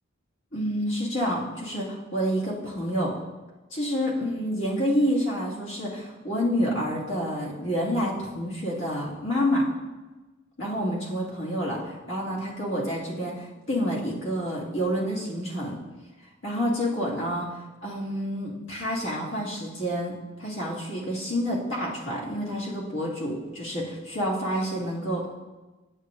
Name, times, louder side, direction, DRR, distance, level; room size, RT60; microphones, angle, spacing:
voice 1, 0.5-3.1 3.7-9.7 10.6-15.8 16.4-20.1 20.4-25.3, equal, 65° left, -5 dB, 1.9 m, -28 dB
8.7 x 7.6 x 2.5 m, 1.2 s
head